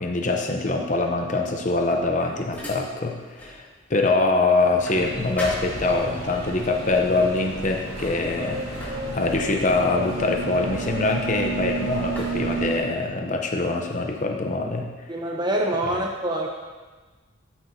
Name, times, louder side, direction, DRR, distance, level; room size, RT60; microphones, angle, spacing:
voice 1, 0.0-14.9, left 3 dB, 40° left, 3 dB, 0.7 m, -24 dB
sound 1, 1.8-3.6 4.0-6.3 7.2-7.4 7.8-11.6 12.1-13.3, left 1 dB, 10° left, 1.9 m, -41 dB
sound 2, 4.9-12.8, right 2 dB, 80° right, 2.1 m, -31 dB
voice 2, 15.1-16.5, right 1 dB, 20° right, 1 dB, 0.7 m, -25 dB
13.5 x 7.8 x 2.8 m, 1.3 s
head